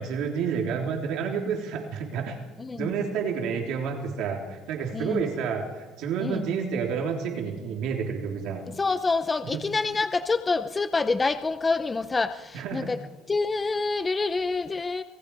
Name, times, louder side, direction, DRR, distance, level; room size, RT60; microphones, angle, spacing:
voice 1, 0.0-2.4 2.7-8.6 12.5-12.9, right 6 dB, 65° right, 1 dB, 3.5 m, -29 dB
voice 2, 2.6-2.9 4.9-5.3 6.2-6.5 8.7-13.0 13.3-15.0, left 3 dB, 15° left, 10 dB, 0.7 m, -27 dB
26.5 x 20.5 x 4.9 m, 1.2 s
cardioid pair, 150°, 0 cm